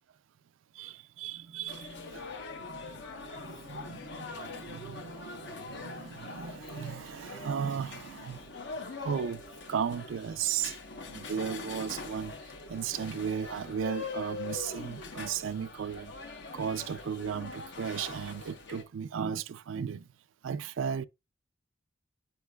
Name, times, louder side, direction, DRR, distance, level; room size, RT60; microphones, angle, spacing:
voice 1, 0.8-2.3 2.7-8.4 9.0-9.4 9.7-10.7 11.1-12.3 12.7-16.1 16.5-20.0 20.4-21.1, right 7 dB, 85° right, 0.4 m, -35 dB
sound 1, 1.7-18.8, left 4 dB, 65° left, 1.0 m, -43 dB
8.2 x 5.1 x 2.3 m
head